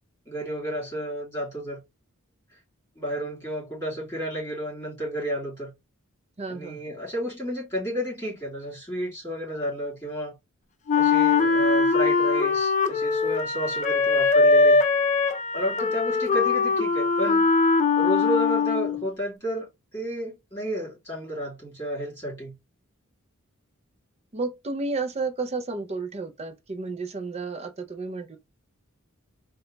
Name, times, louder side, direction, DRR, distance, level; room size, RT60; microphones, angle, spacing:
voice 1, 0.3-1.8 2.5-2.6 3.0-5.7 6.5-10.4 10.9-14.8 15.5-17.5 18.0-19.7 19.9-22.6, equal, 10° left, 2.8 m, -31 dB
voice 2, 6.4-6.8 24.3-28.4, right 3 dB, 30° right, 0.5 m, -32 dB
Wind instrument woodwind instrument, 10.9-19.1, left 4 dB, 35° left, 0.5 m, -21 dB
4.1 x 2.3 x 3.8 m
head